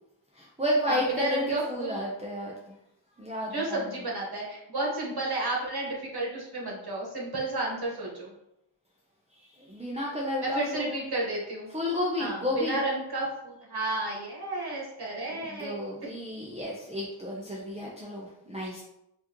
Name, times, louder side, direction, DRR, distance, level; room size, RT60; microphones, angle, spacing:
voice 1, 0.3-2.5 3.2-3.8 9.6-11.1 11.7-12.8 15.3-18.8, left 1 dB, 15° right, -5 dB, 0.7 m, -32 dB
voice 2, 0.9-2.0 3.5-8.3 10.4-11.7 12.2-15.7, right 2 dB, 50° right, -3 dB, 1.5 m, -32 dB
4.6 x 2.8 x 3.0 m, 0.84 s
wide cardioid pair, 55°, 50 cm